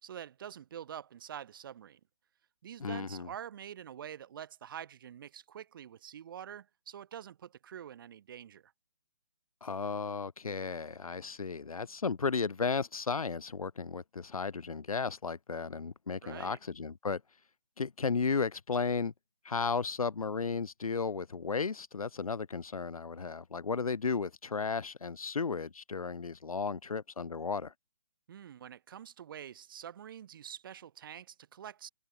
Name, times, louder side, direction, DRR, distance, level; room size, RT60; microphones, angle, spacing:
voice 1, 0.0-2.0 2.6-8.7 16.2-16.6 28.3-31.9, right 9 dB, 40° right, 3.5 m, -46 dB
voice 2, 2.8-3.3 9.6-17.2 17.8-19.1 19.4-27.7, left 5 dB, 80° left, 1.1 m, -34 dB
hypercardioid pair, 160°, 18 cm